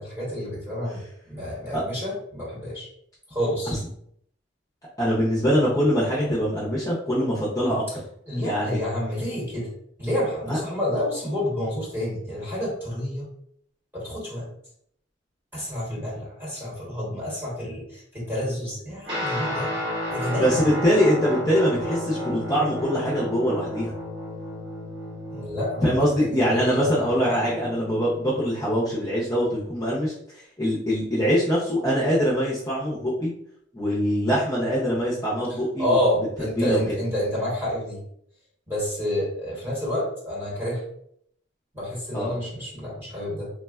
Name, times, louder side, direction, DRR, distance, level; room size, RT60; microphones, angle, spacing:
voice 1, 0.0-2.9 3.3-3.8 8.3-9.7 10.0-13.3 13.9-14.5 15.5-19.7 20.1-20.7 25.3-27.2 35.8-38.0 38.7-40.8 41.7-43.5, left 1 dB, 10° right, -7 dB, 1.0 m, -29 dB
voice 2, 5.0-8.0 8.4-8.8 10.5-10.6 20.4-23.9 25.8-33.3 33.7-36.0 36.6-36.8 42.1-42.4, equal, 15° left, -7 dB, 0.5 m, -23 dB
Guitar, 19.0-28.7, left 1 dB, 65° right, 1.2 m, -33 dB
3.4 x 2.1 x 2.2 m, 0.69 s
head